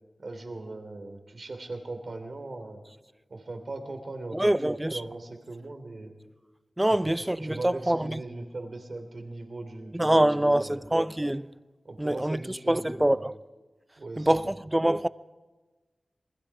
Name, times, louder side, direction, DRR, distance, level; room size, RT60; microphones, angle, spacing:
voice 1, 0.2-2.8 3.3-6.1 6.8-6.9 7.4-10.8 11.8-13.2 14.0-14.5, right 2 dB, 60° right, 3.4 m, -39 dB
voice 2, 4.3-5.0 6.8-8.2 9.9-11.5 12.0-13.3 14.2-15.1, right 1 dB, 15° right, 0.7 m, -25 dB
28.0 x 21.0 x 4.9 m
cardioid pair, 45°, 0 cm